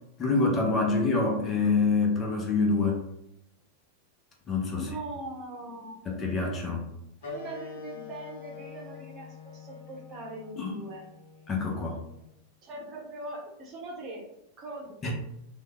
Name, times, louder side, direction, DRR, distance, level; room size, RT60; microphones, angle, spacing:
voice 1, 0.2-3.0 4.5-4.9 6.1-6.9 10.6-10.8 11.5-12.0 15.0-15.1, left 3 dB, 25° left, 0 dB, 0.5 m, -26 dB
voice 2, 4.7-6.1 7.2-11.1 12.6-14.2 14.6-15.1, right 2 dB, 30° right, -3 dB, 0.8 m, -41 dB
Wind instrument woodwind instrument, 7.2-12.3, left 5 dB, 60° left, 0.7 m, -45 dB
3.1 x 2.1 x 2.2 m, 0.81 s
figure-of-eight pair, 90°, 0 cm